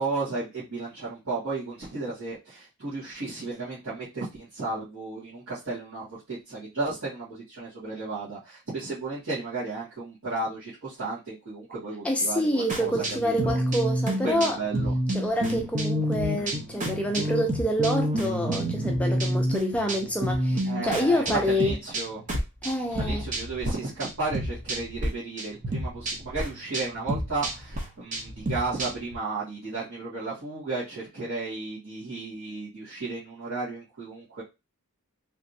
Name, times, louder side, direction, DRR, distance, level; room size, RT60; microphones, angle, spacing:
voice 1, 0.0-13.6 14.2-14.9 20.6-22.2 23.0-34.4, right 3 dB, 75° right, 1.8 m, -34 dB
voice 2, 12.0-14.6 15.1-21.7 22.6-23.2, equal, 5° left, 0.4 m, -27 dB
sound 1, 12.7-23.7 24.0-25.1 25.4-29.1, equal, 35° right, 0.7 m, -29 dB
3.3 x 3.0 x 2.6 m
head